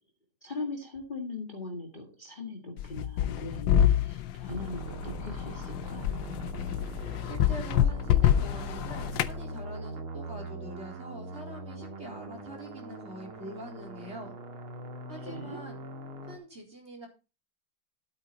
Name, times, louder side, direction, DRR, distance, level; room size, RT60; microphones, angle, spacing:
voice 1, 0.4-6.1 15.2-15.6, left 3 dB, 25° left, 1 dB, 2.0 m, -40 dB
sound 1, 2.8-9.4, left 10 dB, 70° left, 1.4 m, -27 dB
sound 2, 4.5-16.4, right 2 dB, 90° right, 3.0 m, -41 dB
voice 2, 7.2-14.3 15.1-15.8 16.3-17.1, right 1 dB, 30° right, 0 dB, 4.1 m, -44 dB
12.5 x 8.6 x 4.0 m, 0.30 s
omnidirectional pair, 2.3 m